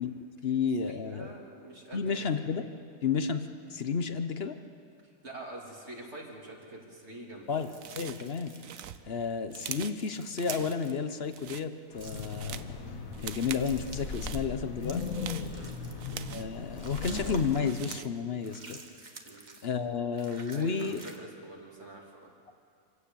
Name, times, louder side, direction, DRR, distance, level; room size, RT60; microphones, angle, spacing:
voice 1, 0.0-1.3 1.9-2.7 3.0-4.6 7.5-8.5 9.0-12.6 13.2-15.0 16.3-18.8 19.6-21.0, left 6 dB, 50° left, 9 dB, 1.1 m, -32 dB
voice 2, 0.8-2.3 5.2-7.6 15.5-15.7 19.2-19.5 20.5-22.3, right 2 dB, 50° right, -1 dB, 3.3 m, -46 dB
sound 1, 7.5-8.8 9.9-11.0 12.0-12.4 13.3-14.1 14.8-16.2 16.7-17.7 18.4-19.7 20.2-21.2, right 3 dB, 35° right, 1.4 m, -50 dB
sound 2, 7.8-8.3 8.6-10.0 10.4-10.9 11.2-11.7 12.0-12.7 13.1-13.7 14.0-14.5 15.0-16.6 16.9-18.2, right 10 dB, 75° right, 1.1 m, -42 dB
Wind, 11.9-17.4, left 4 dB, 75° left, 1.9 m, -37 dB
26.5 x 16.5 x 7.1 m, 2.3 s
omnidirectional pair, 1.5 m